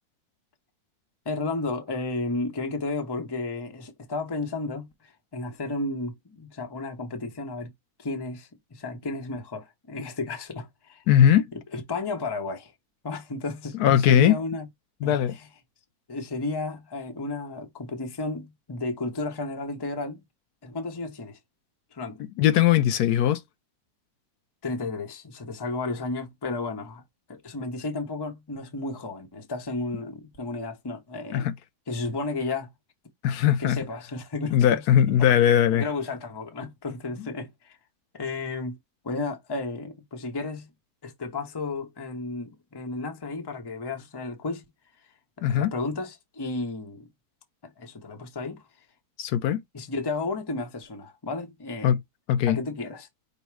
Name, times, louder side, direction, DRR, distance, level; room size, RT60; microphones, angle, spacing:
voice 1, 1.2-7.7 8.0-11.0 11.7-12.7 13.0-14.7 15.0-15.5 16.1-20.2 20.6-21.4 21.9-22.2 24.6-27.0 27.3-31.5 31.9-32.7 33.6-34.8 35.2-35.3 35.7-37.8 38.1-38.8 39.0-40.7 41.0-44.6 45.5-47.1 47.6-48.6 49.7-51.9 52.5-53.1, left 3 dB, 20° left, 0.7 m, -33 dB
voice 2, 11.1-11.5 13.8-14.4 15.0-15.3 22.4-23.4 31.3-31.5 33.2-33.8 34.5-35.8 45.4-45.7 49.2-49.6 51.8-52.0 52.3-52.6, left 10 dB, 90° left, 1.1 m, -20 dB
5.3 x 2.1 x 4.6 m
omnidirectional pair, 1.6 m